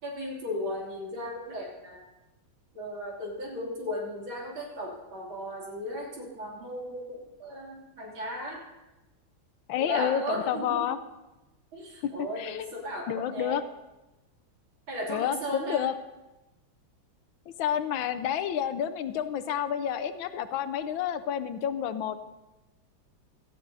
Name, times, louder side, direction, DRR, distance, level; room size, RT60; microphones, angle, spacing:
voice 1, 0.0-2.0 2.7-8.6 9.8-10.9 11.7-13.6 14.9-15.9, equal, 75° right, -3 dB, 3.6 m, -36 dB
voice 2, 9.7-11.0 12.4-12.6 13.1-13.6 15.1-15.9 17.5-22.2, left 9 dB, 75° left, 12 dB, 1.3 m, -30 dB
16.5 x 13.0 x 2.7 m, 1.0 s
omnidirectional pair, 2.2 m